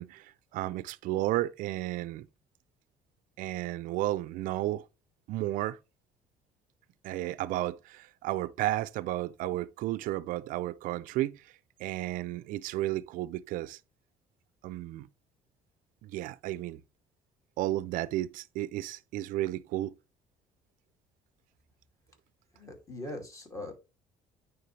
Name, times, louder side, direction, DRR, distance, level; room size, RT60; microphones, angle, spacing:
voice 1, 0.0-2.3 3.4-4.9 5.3-5.8 7.0-11.4 11.8-13.8 14.6-15.1 16.0-16.8 17.6-19.9, right 15 dB, 70° right, 0.4 m, -33 dB
voice 2, 22.5-23.7, left 2 dB, 20° left, 2.4 m, -41 dB
9.2 x 3.6 x 3.2 m
cardioid pair, 110°, 14 cm